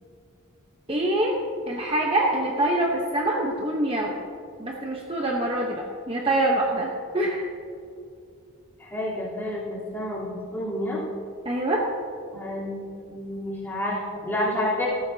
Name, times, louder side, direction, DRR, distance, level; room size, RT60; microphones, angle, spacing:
voice 1, 0.9-1.4 1.7-4.1 4.6-7.5 11.4-11.8, right 1 dB, 25° right, -1 dB, 1.0 m, -25 dB
voice 2, 8.8-11.0 12.3-12.8 13.1-14.9, left 1 dB, 10° left, -8 dB, 3.6 m, -29 dB
17.5 x 13.5 x 2.8 m, 2.4 s
head